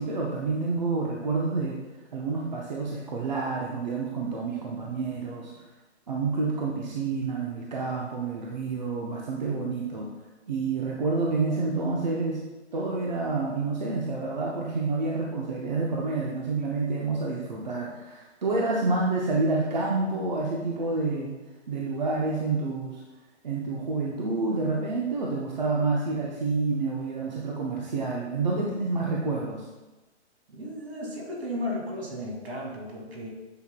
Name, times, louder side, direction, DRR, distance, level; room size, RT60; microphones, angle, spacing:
voice 1, 0.0-1.8 2.1-5.5 6.1-10.1 10.5-12.4 12.7-21.3 21.7-23.0 23.4-29.7, right 3 dB, 40° right, -2 dB, 0.7 m, -28 dB
voice 2, 30.5-33.3, left 1 dB, 60° right, -1 dB, 2.3 m, -34 dB
8.9 x 5.8 x 2.2 m, 1.1 s
hypercardioid pair, 175°, 35 cm